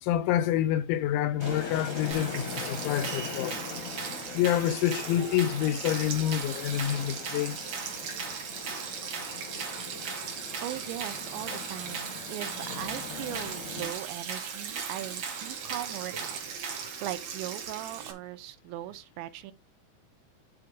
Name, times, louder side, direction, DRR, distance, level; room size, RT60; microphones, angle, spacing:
voice 1, 0.0-3.6 4.3-7.6, left 11 dB, 85° left, 2.9 m, -27 dB
sound 1, 1.4-13.9, left 6 dB, 65° left, 2.1 m, -41 dB
Sink (filling or washing), 1.4-18.1, right 7 dB, 65° right, 1.7 m, -39 dB
sound 2, 2.1-17.0, right 5 dB, 40° right, 2.0 m, -41 dB
voice 2, 10.6-19.5, right 14 dB, 80° right, 2.9 m, -39 dB
9.1 x 4.4 x 4.8 m
omnidirectional pair, 5.4 m